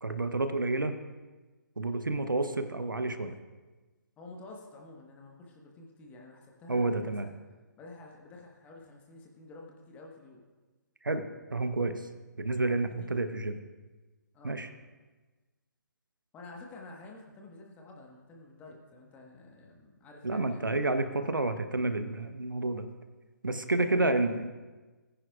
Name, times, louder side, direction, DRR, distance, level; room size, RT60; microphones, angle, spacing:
voice 1, 0.0-0.9 1.8-3.4 6.7-7.3 11.0-11.2 11.5-11.9 12.4-13.6 14.4-14.7 20.2-22.9 23.4-24.5, right 2 dB, 80° right, 9 dB, 0.9 m, -29 dB
voice 2, 4.2-7.3 7.8-10.4 13.0-13.2 14.3-14.6 16.3-21.1 23.7-24.1, left 2 dB, 15° left, 0 dB, 1.3 m, -50 dB
19.5 x 10.0 x 2.4 m, 1.3 s
figure-of-eight pair, 135°, 11 cm